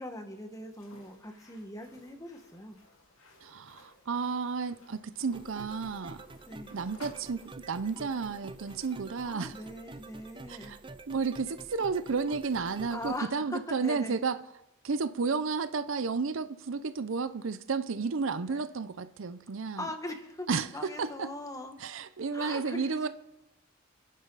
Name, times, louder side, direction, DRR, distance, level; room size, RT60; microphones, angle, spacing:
voice 1, 0.0-2.8 6.4-6.7 9.2-10.8 12.9-14.2 18.4-18.6 19.8-22.0 22.3-23.1, left 1 dB, 15° left, 1.5 m, -41 dB
sound 1, 0.7-9.6, left 2 dB, 75° left, 2.4 m, -58 dB
voice 2, 3.4-6.2 6.7-9.6 10.5-10.8 11.1-14.4 14.8-19.9 20.5-20.7 21.0-21.3 21.8-23.1, right 4 dB, 65° right, 0.6 m, -32 dB
sound 2, 5.3-13.2, right 3 dB, 25° right, 0.5 m, -48 dB
28.5 x 10.5 x 4.0 m
head